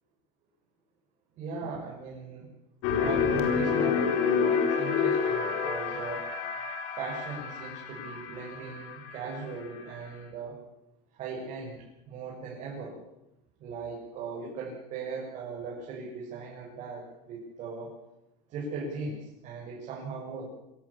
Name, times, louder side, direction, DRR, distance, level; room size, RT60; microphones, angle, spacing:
voice 1, 1.4-2.5 3.0-6.2 7.0-10.6 11.1-11.8 12.1-13.0 13.6-17.9 18.5-20.5, right 4 dB, 45° right, -4 dB, 7.2 m, -38 dB
sound 1, 2.8-9.8, left 6 dB, 75° left, 4.4 m, -28 dB
26.0 x 17.5 x 7.5 m, 0.87 s
cardioid pair, 165°, 17 cm